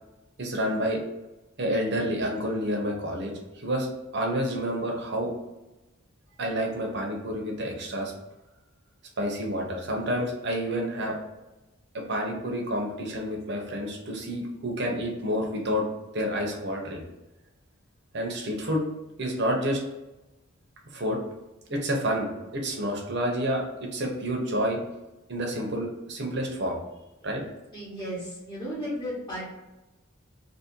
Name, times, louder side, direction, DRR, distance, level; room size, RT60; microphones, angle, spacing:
voice 1, 0.4-1.0 1.6-3.9 4.1-5.3 6.4-8.1 9.2-11.2 11.9-15.8 16.1-17.0 18.1-18.8 19.2-19.8 20.9-21.2 21.7-23.6 23.9-24.8 25.3-26.8 27.2-27.4, equal, 55° right, 0 dB, 0.9 m, -29 dB
voice 2, 27.7-29.4, equal, 15° left, -9 dB, 1.3 m, -34 dB
3.0 x 2.8 x 4.4 m, 1.0 s
head